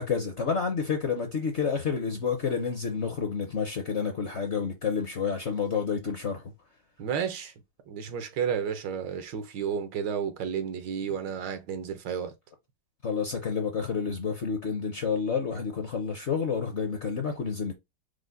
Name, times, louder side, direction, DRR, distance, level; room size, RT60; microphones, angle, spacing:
voice 1, 0.0-6.4 13.0-17.7, left 6 dB, 60° left, 0.7 m, -29 dB
voice 2, 7.0-7.5 7.9-12.3, right 7 dB, 85° right, 1.5 m, -32 dB
4.9 x 2.1 x 3.8 m
omnidirectional pair, 1.9 m